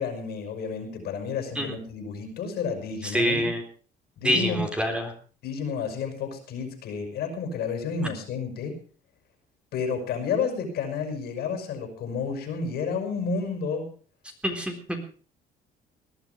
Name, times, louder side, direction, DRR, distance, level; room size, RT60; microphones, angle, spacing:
voice 1, 0.0-3.5 4.2-4.6 5.4-8.8 9.7-13.9, left 5 dB, 70° left, 6 dB, 6.0 m, -31 dB
voice 2, 3.1-3.6 4.2-5.0 14.4-15.0, equal, 5° right, 3 dB, 3.8 m, -25 dB
19.5 x 11.5 x 5.3 m, 0.41 s
cardioid pair, 110°, 17 cm